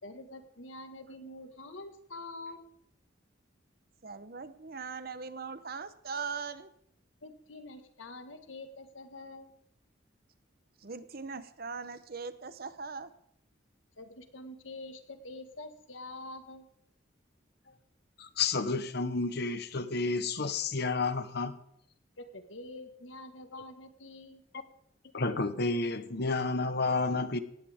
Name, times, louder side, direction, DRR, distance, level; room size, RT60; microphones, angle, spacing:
voice 1, 0.0-2.7 7.2-9.6 14.0-16.7 22.2-24.4, left 2 dB, 90° left, 7 dB, 1.7 m, -46 dB
voice 2, 4.0-6.7 10.8-13.1, right 5 dB, 50° right, 13 dB, 0.9 m, -40 dB
voice 3, 18.2-21.6 25.1-27.4, left 3 dB, 60° left, 11 dB, 1.1 m, -30 dB
18.0 x 16.0 x 3.6 m, 0.71 s
head